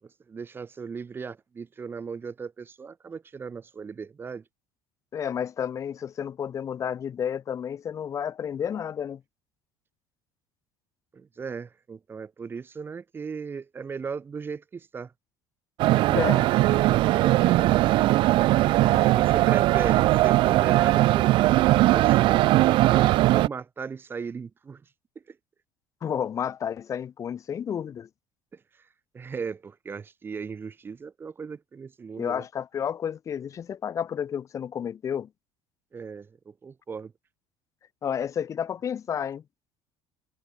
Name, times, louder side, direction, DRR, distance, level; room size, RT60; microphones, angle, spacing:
voice 1, 0.0-4.4 11.1-15.1 19.1-24.8 25.3-25.4 28.5-28.6 29.1-32.4 35.9-37.1, right 5 dB, 20° right, 6.4 m, -37 dB
voice 2, 5.1-9.2 16.1-17.0 18.8-19.2 19.7-20.0 26.0-28.1 32.2-35.3 38.0-39.4, left 8 dB, 30° left, 3.5 m, -31 dB
sound 1, 15.8-23.5, right 17 dB, 55° right, 0.7 m, -20 dB
cardioid pair, 150°, 10 cm